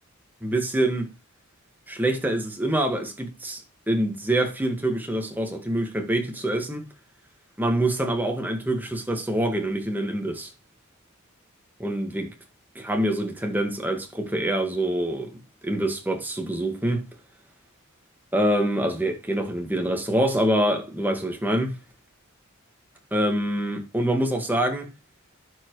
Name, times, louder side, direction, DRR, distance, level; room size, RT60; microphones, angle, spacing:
voice 1, 0.4-1.1 1.9-6.9 7.6-10.5 11.8-12.3 12.8-17.1 18.3-21.8 23.1-24.9, right 1 dB, 10° right, 1.7 m, -25 dB
11.5 x 5.8 x 3.2 m
head